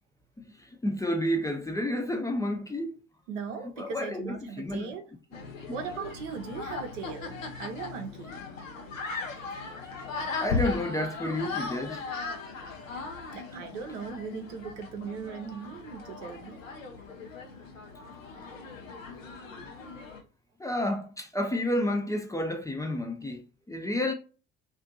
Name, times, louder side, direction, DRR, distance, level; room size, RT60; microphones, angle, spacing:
voice 1, 0.5-3.0 3.8-4.9 10.4-12.0 20.6-23.4 23.7-24.1, left 1 dB, 10° left, 0.4 m, -30 dB
voice 2, 3.3-5.0 5.7-8.3 13.3-16.6, right 5 dB, 70° right, 0.7 m, -38 dB
sound 1, 5.3-20.2, left 4 dB, 85° left, 0.6 m, -38 dB
2.5 x 2.4 x 2.6 m
figure-of-eight pair, 55°, 38 cm